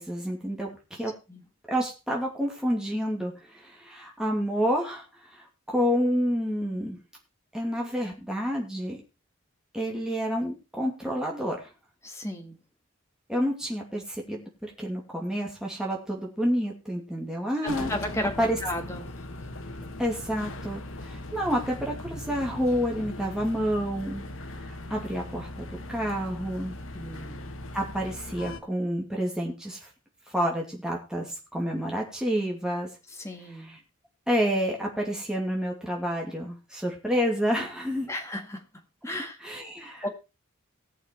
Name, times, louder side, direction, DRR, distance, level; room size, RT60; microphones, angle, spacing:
voice 1, 0.0-1.1 1.7-7.0 7.5-9.0 9.7-11.7 13.3-17.9 18.4-18.6 20.0-24.3 24.6-26.8 27.7-29.9 30.3-32.9 33.5-33.8 34.3-38.1 39.4-40.0, equal, 5° right, -1 dB, 2.5 m, -29 dB
voice 2, 12.0-12.6 17.9-18.3 18.6-19.0 26.9-27.5 33.2-33.8 38.1-38.6 39.0-39.4 40.0-40.1, left 1 dB, 15° left, 3 dB, 1.9 m, -34 dB
sound 1, 17.7-28.6, left 1 dB, 70° left, 1.3 m, -39 dB
18.0 x 6.5 x 4.5 m, 0.30 s
head